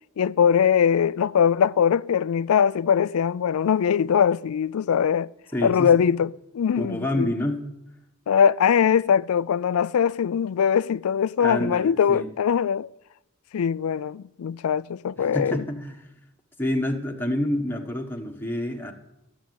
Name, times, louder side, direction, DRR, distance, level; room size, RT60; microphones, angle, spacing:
voice 1, 0.2-5.3 5.6-7.3 8.3-12.9 13.5-15.6, left 7 dB, 90° left, 0.4 m, -21 dB
voice 2, 5.5-6.0 6.7-7.7 11.4-12.3 15.2-16.1 16.6-18.9, left 1 dB, 10° left, 1.2 m, -28 dB
13.5 x 7.2 x 9.3 m
head